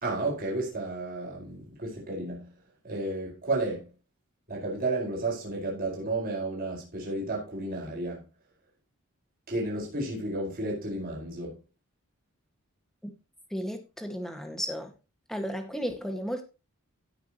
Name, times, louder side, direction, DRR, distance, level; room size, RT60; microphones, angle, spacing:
voice 1, 0.0-2.5 2.8-3.8 4.5-8.2 9.5-11.6, right 2 dB, 45° right, 4.7 m, -32 dB
voice 2, 13.5-14.9 15.3-16.4, equal, ahead, 1.6 m, -34 dB
17.0 x 6.0 x 3.0 m
head